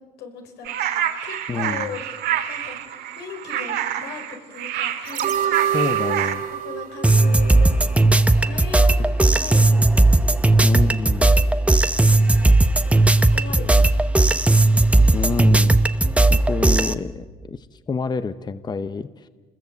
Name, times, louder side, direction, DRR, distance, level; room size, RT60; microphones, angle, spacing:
voice 1, 0.2-2.2 2.5-2.8 3.0-5.8 6.0-9.8 11.2-11.4 12.1-12.6 12.8-14.2, left 5 dB, 85° left, 4 dB, 5.2 m, -39 dB
sound 1, 0.6-6.3, right 10 dB, 80° right, 2.1 m, -27 dB
voice 2, 1.5-2.0 5.7-6.4 10.6-11.3 13.5-13.9 15.1-15.8 16.3-19.3, left 5 dB, 25° left, 13 dB, 0.8 m, -28 dB
sound 2, 5.0-8.2 8.5-8.6, right 10 dB, 55° right, 2.7 m, -26 dB
sound 3, 7.0-16.9, right 2 dB, 5° right, 0.9 m, -16 dB
28.0 x 21.0 x 8.2 m, 1.4 s
cardioid pair, 110°, 17 cm